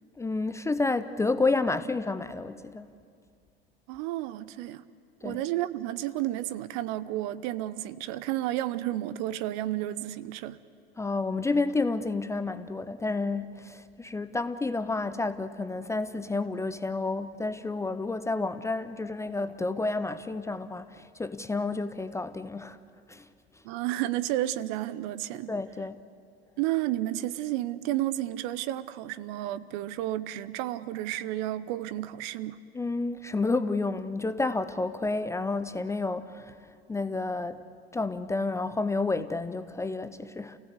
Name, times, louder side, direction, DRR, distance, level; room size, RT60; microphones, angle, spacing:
voice 1, 0.2-2.9 5.2-5.4 11.0-22.8 23.1-23.3 25.5-26.0 32.7-36.5 36.9-37.6 37.9-40.6, left 3 dB, 10° left, 0.6 m, -30 dB
voice 2, 3.9-4.8 5.2-10.6 23.6-25.5 26.6-32.6, right 14 dB, 50° right, 0.9 m, -31 dB
29.0 x 16.5 x 8.2 m
figure-of-eight pair, 85°, 31 cm